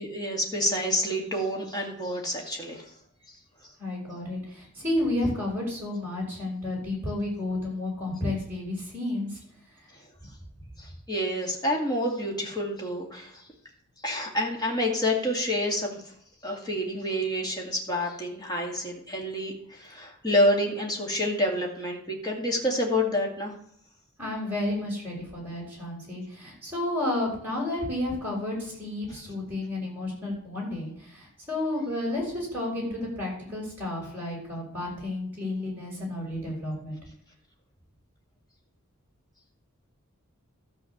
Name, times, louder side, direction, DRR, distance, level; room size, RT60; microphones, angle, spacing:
voice 1, 0.0-2.9 10.8-13.4 14.0-16.1 16.4-23.5, left 1 dB, 20° left, -1 dB, 2.2 m, -28 dB
voice 2, 3.8-9.4 24.2-37.0, left 1 dB, 10° right, -5 dB, 5.5 m, -31 dB
13.0 x 4.8 x 7.3 m, 0.70 s
head